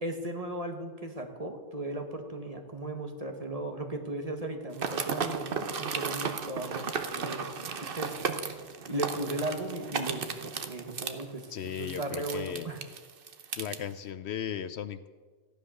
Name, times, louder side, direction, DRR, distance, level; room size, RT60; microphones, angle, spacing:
voice 1, 0.0-7.5 7.9-8.1 8.4-11.5 11.8-12.8, right 1 dB, 30° right, 4 dB, 1.5 m, -36 dB
sound 1, 4.7-13.8, right 5 dB, 50° right, 1.1 m, -35 dB
voice 2, 11.5-12.7 13.6-15.1, left 9 dB, 70° left, 13 dB, 0.8 m, -36 dB
15.0 x 11.0 x 6.4 m, 1.5 s
omnidirectional pair, 1.2 m